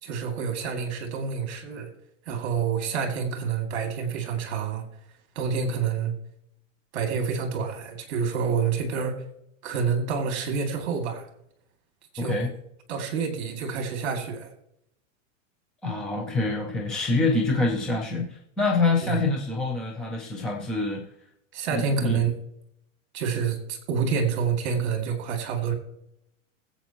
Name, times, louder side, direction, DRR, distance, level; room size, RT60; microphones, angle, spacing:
voice 1, 0.0-1.9 2.3-4.8 5.4-6.1 6.9-9.2 9.6-11.3 12.1-12.5 12.9-14.5 19.0-19.2 21.5-22.3 23.1-25.7, right 6 dB, 55° right, 5 dB, 2.5 m, -28 dB
voice 2, 12.2-12.5 15.8-21.0 21.7-22.2, left 3 dB, ahead, 0 dB, 0.4 m, -26 dB
21.0 x 8.1 x 3.0 m, 0.78 s
supercardioid pair, 165°, 39 cm